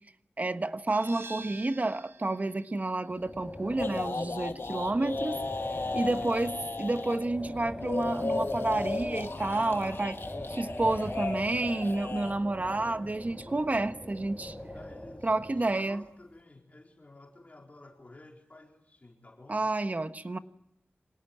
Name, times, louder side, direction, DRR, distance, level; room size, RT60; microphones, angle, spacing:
voice 1, 0.4-5.4 5.9-10.2 10.5-14.6 15.2-16.0 19.5-20.4, right 2 dB, 40° right, 9 dB, 1.3 m, -30 dB
sound 1, 0.9-6.3, right 3 dB, 75° right, 2.6 m, -51 dB
Wind, 3.1-15.7, left 1 dB, 5° left, 4.9 m, -40 dB
sound 2, 3.8-7.2 7.8-12.3, left 3 dB, 65° left, 2.0 m, -36 dB
voice 2, 6.1-6.5 12.8-13.2 14.7-19.6, left 2 dB, 35° left, 1 dB, 4.4 m, -53 dB
26.5 x 18.5 x 9.7 m, 0.82 s
wide cardioid pair, 85°, 4 cm